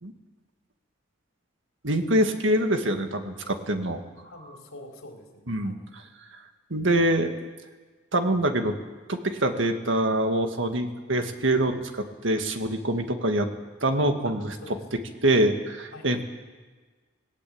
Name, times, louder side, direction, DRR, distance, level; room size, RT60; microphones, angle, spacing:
voice 1, 1.8-4.0 5.5-6.0 6.7-7.3 8.1-8.8 9.1-13.5 13.8-14.5 15.2-16.2, right 1 dB, 60° right, 6 dB, 2.0 m, -25 dB
voice 2, 4.2-5.8 14.2-14.3 14.6-14.8 15.9-16.1, left 2 dB, 85° left, 2 dB, 4.0 m, -45 dB
19.5 x 19.0 x 8.7 m, 1.4 s
head